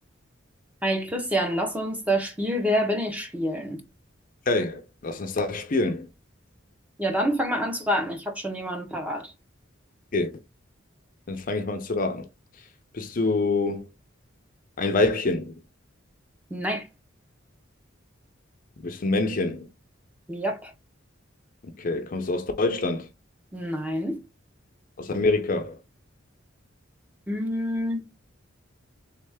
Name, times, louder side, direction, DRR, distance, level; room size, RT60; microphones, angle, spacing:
voice 1, 0.8-3.8 7.0-9.3 16.5-16.9 20.3-20.7 23.5-24.2 27.3-28.0, equal, 10° right, 0.7 m, -27 dB
voice 2, 4.5-6.1 10.1-10.3 11.3-12.3 12.9-13.9 14.8-15.6 18.8-19.7 21.6-23.1 25.0-25.8, left 2 dB, 45° left, 0.5 m, -26 dB
3.5 x 3.2 x 3.4 m
head